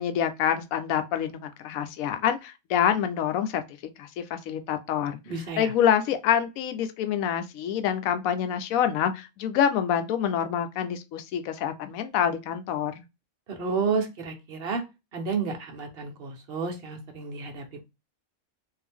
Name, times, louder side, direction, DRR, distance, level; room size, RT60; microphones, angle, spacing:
voice 1, 0.0-3.6 4.0-5.2 5.6-13.0, left 9 dB, 80° left, 1.0 m, -26 dB
voice 2, 5.2-5.7 13.5-14.8 15.1-17.9, right 5 dB, 50° right, 1.0 m, -31 dB
3.7 x 2.5 x 3.4 m
omnidirectional pair, 1.5 m